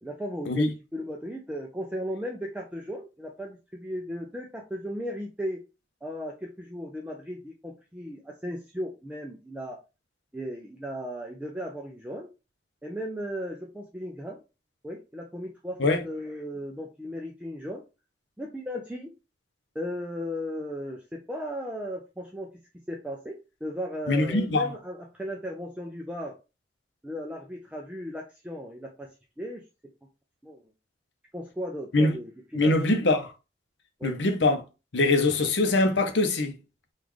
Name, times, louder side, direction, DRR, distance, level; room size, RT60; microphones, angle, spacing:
voice 1, 0.0-5.6 6.0-9.8 10.3-12.3 12.8-14.4 14.8-17.8 18.4-19.1 19.7-22.5 22.9-23.4 23.6-26.3 27.0-29.1 29.4-29.6 30.4-30.6 31.3-32.7 34.0-34.2, equal, 5° right, 0.4 m, -36 dB
voice 2, 24.1-24.7 31.9-32.1 32.5-33.3 34.0-34.6 34.9-36.6, left 2 dB, 85° left, 0.7 m, -23 dB
3.7 x 2.4 x 3.0 m
head